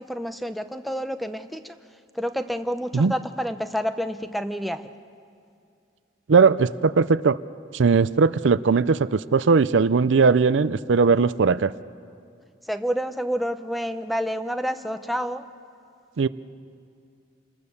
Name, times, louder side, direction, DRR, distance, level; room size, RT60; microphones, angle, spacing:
voice 1, 0.0-1.8 2.1-4.9 12.6-15.5, equal, ahead, 10 dB, 0.6 m, -29 dB
voice 2, 6.3-7.4 7.7-11.7 16.2-16.3, right 5 dB, 75° right, 16 dB, 0.5 m, -19 dB
28.0 x 20.0 x 7.1 m, 2.4 s
head